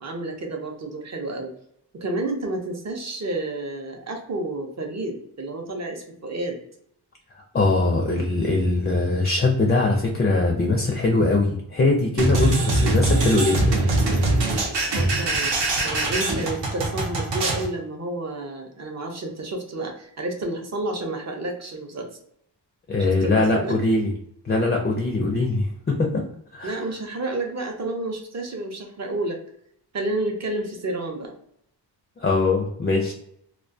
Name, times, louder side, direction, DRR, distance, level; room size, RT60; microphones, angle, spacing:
voice 1, 0.0-1.5 1.9-6.6 14.9-22.1 23.0-23.8 26.6-29.4 29.9-31.3, right 2 dB, 40° right, 3 dB, 0.5 m, -30 dB
voice 2, 7.5-13.8 22.9-24.1 24.4-26.2 26.5-26.8 32.2-33.1, left 2 dB, 25° left, 1 dB, 0.4 m, -21 dB
sound 1, 12.2-17.7, right 2 dB, 80° right, 0.8 m, -22 dB
2.2 x 2.2 x 2.5 m, 0.70 s
wide cardioid pair, 105°, 43 cm